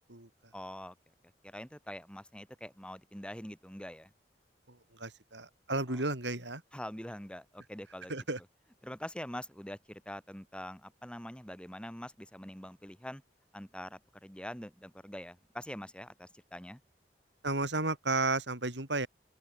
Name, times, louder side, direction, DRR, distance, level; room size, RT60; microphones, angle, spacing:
voice 1, 0.5-0.9 1.4-4.1 5.9-6.0 6.7-8.1 8.8-13.2 13.5-16.8, left 1 dB, 5° left, 6.3 m, -44 dB
voice 2, 4.7-6.6 8.1-8.4 17.4-19.1, right 2 dB, 75° right, 5.8 m, -33 dB
open air
head